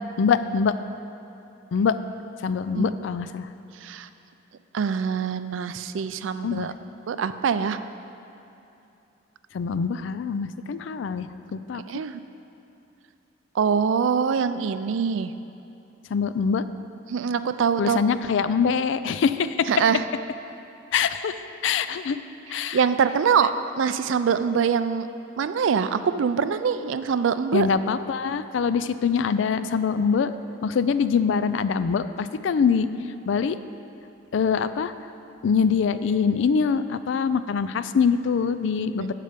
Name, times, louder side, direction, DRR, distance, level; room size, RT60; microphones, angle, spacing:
voice 1, 0.2-0.7 1.7-2.0 2.4-3.5 6.4-6.7 9.5-11.8 16.1-16.6 17.8-19.7 20.9-21.4 21.6-22.2 22.5-22.8 27.5-30.3 30.6-32.9 33.3-33.6 34.3-34.9 35.4-39.1, left 6 dB, 70° left, 12 dB, 0.4 m, -24 dB
voice 2, 4.7-6.7 7.1-7.8 11.9-12.2 13.5-15.3 17.1-18.0 19.7-20.0 22.7-23.5 23.8-25.1 25.4-27.7 39.0-39.1, right 6 dB, 80° right, 12 dB, 0.4 m, -24 dB
9.8 x 6.7 x 5.1 m, 2.8 s
head